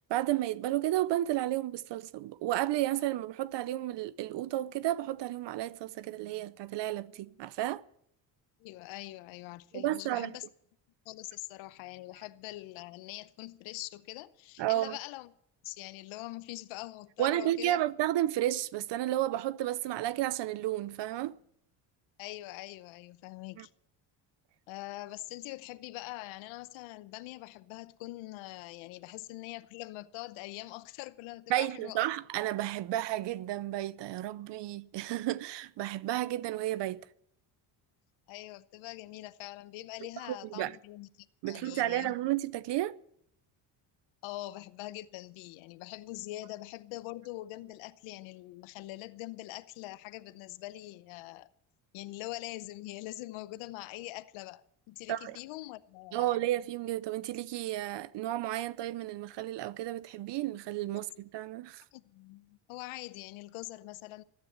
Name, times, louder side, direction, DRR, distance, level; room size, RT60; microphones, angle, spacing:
voice 1, 0.1-7.8 9.7-10.3 14.6-14.9 17.2-21.4 23.6-23.7 31.5-37.1 40.3-40.8 41.4-43.0 55.1-55.4 56.1-61.8, right 14 dB, 65° right, 0.7 m, -32 dB
voice 2, 8.6-10.4 11.1-15.3 15.6-17.8 22.2-23.7 24.7-32.1 38.3-42.1 44.2-51.5 51.9-56.4 61.9-64.2, left 18 dB, 85° left, 0.8 m, -43 dB
14.5 x 9.8 x 8.2 m
supercardioid pair, 85°, 47 cm